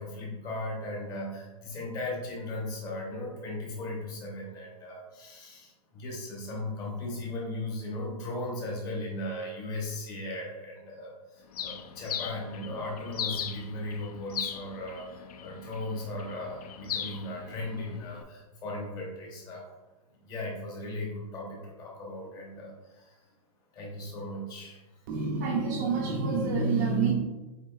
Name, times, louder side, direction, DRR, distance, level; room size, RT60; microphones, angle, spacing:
voice 1, 0.0-19.7 20.2-23.3 23.7-25.0, left 1 dB, 20° left, -3 dB, 1.0 m, -37 dB
Bird, 11.5-18.2, left 9 dB, 75° left, 0.5 m, -39 dB
voice 2, 25.1-27.1, right 4 dB, 30° right, 0 dB, 0.5 m, -27 dB
7.4 x 2.9 x 2.3 m, 1.1 s
supercardioid pair, 170°, 20 cm